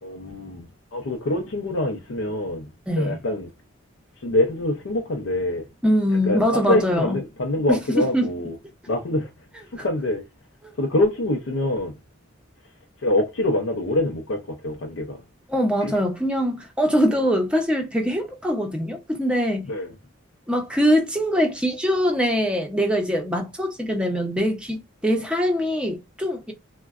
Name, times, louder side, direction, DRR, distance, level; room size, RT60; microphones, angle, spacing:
voice 1, 0.0-2.7 3.0-3.5 4.2-5.7 6.3-8.6 8.9-9.3 9.7-10.2 10.8-12.0 13.0-15.2 15.8-15.9 19.7-19.9, left 1 dB, 70° left, 0.5 m, -25 dB
voice 2, 2.9-3.2 5.8-7.2 7.7-7.8 8.1-8.3 9.8-9.9 10.6-10.7 15.5-19.7 20.5-26.5, equal, 5° right, 0.6 m, -23 dB
3.7 x 2.1 x 2.3 m
head